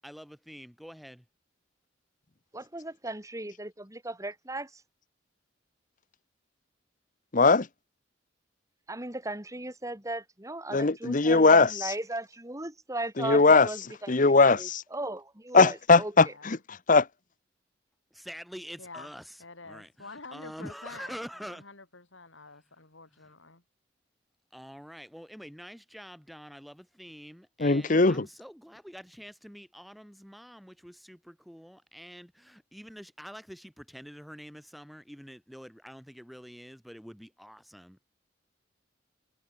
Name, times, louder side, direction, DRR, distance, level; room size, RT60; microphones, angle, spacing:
voice 1, 0.0-1.2 18.1-19.2 19.6-21.6 23.2-23.3 24.5-38.0, equal, ahead, 5.2 m, -46 dB
voice 2, 2.5-4.8 8.9-14.1 14.4-16.1, right 2 dB, 15° right, 2.7 m, -37 dB
voice 3, 7.3-7.7 10.7-11.9 13.2-13.7 14.1-14.8 15.5-17.1 27.6-28.3, left 3 dB, 45° left, 0.9 m, -20 dB
voice 4, 16.2-16.6 18.8-19.1 19.4-23.6, left 3 dB, 85° left, 6.3 m, -48 dB
head